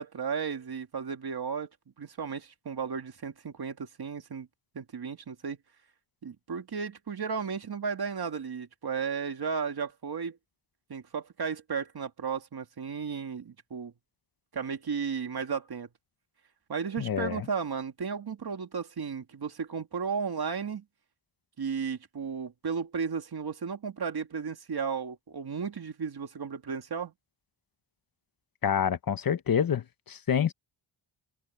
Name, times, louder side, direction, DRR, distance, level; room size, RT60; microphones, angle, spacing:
voice 1, 0.0-1.7 2.0-4.5 4.7-5.6 6.2-10.4 10.9-13.9 14.5-15.9 16.7-20.8 21.6-27.1, right 6 dB, 50° right, 2.1 m, -34 dB
voice 2, 17.0-17.4 28.6-30.5, left 8 dB, 45° left, 0.8 m, -27 dB
wide cardioid pair, 155°, 49 cm